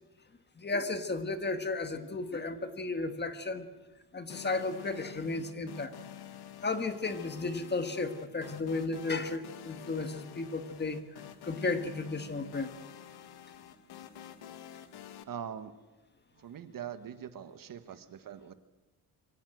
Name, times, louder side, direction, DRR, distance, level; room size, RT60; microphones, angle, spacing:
voice 1, 0.6-3.7 4.1-5.9 6.6-12.7, left 3 dB, 25° left, 8 dB, 1.7 m, -34 dB
sound 1, 4.3-15.2, left 10 dB, 90° left, 1.6 m, -49 dB
voice 2, 15.3-15.7 16.3-18.5, right 9 dB, 60° right, 10 dB, 1.5 m, -42 dB
24.0 x 17.5 x 7.8 m, 1.1 s
cardioid pair, 130°, 37 cm